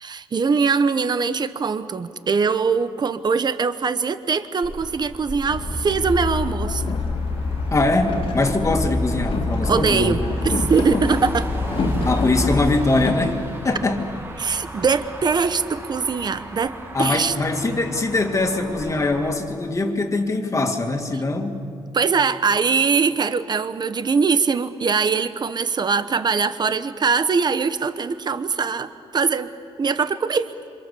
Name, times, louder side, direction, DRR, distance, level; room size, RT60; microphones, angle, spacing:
voice 1, 0.0-6.9 9.7-10.2 10.4-11.5 14.4-17.3 21.9-29.5 29.8-30.5, right 5 dB, 40° right, 12 dB, 1.1 m, -22 dB
Motor vehicle (road), 4.6-19.3, equal, 20° right, 3.0 m, -34 dB
Boat Water vehicle, 5.5-13.1, left 3 dB, 55° left, 2.4 m, -26 dB
voice 2, 7.7-10.1 12.0-13.4 13.6-14.1 16.9-21.6, left 2 dB, 30° left, 4 dB, 2.5 m, -22 dB
27.5 x 26.0 x 6.9 m, 2.3 s
cardioid pair, 105°, 11 cm